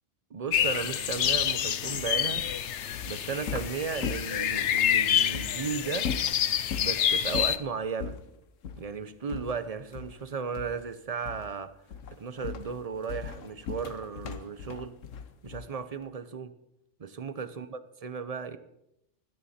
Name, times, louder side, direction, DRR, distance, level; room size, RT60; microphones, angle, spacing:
voice 1, 0.3-2.5 3.0-6.1 6.7-8.2 8.8-11.7 12.1-15.0 15.4-16.5 17.0-18.6, right 5 dB, 35° right, 0.7 m, -35 dB
sound 1, 0.5-7.6, left 9 dB, 70° left, 1.0 m, -28 dB
sound 2, 1.2-4.9 5.3-5.5 6.0-6.9 7.3-7.6 8.0-8.2 8.6-8.9 9.3-10.3 10.5-10.9 11.2-11.6 11.9-15.8, left 6 dB, 85° left, 1.3 m, -38 dB
17.0 x 12.5 x 4.3 m
omnidirectional pair, 1.3 m